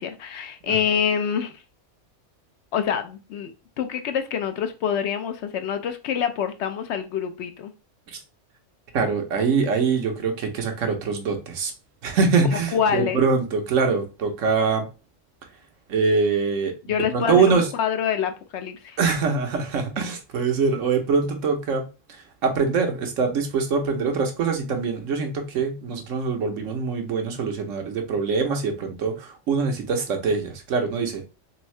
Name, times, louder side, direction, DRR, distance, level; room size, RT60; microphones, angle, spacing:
voice 1, 0.0-1.6 2.7-3.5 3.8-7.7 12.7-13.2 16.9-19.0, left 8 dB, 65° left, 0.8 m, -26 dB
voice 2, 8.9-11.7 12.0-14.8 15.9-17.7 19.0-21.8 22.4-31.2, right 5 dB, 80° right, 1.3 m, -23 dB
3.6 x 3.5 x 3.2 m
omnidirectional pair, 1.3 m